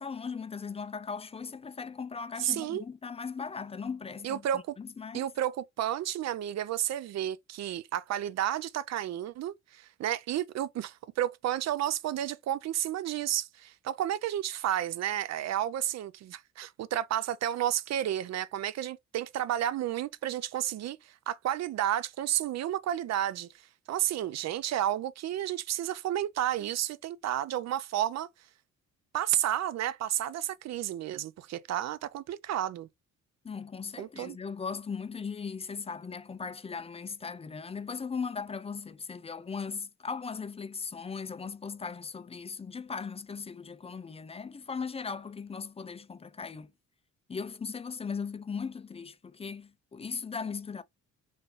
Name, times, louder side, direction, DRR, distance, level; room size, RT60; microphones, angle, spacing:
voice 1, 0.0-4.4 4.8-5.3 33.4-46.7 47.3-50.8, left 5 dB, 20° left, 0.4 m, -38 dB
voice 2, 2.4-2.8 4.2-4.7 5.1-28.3 29.1-32.9 34.0-34.4, right 11 dB, 60° right, 0.5 m, -31 dB
4.3 x 2.5 x 3.2 m
cardioid pair, 90°, 30 cm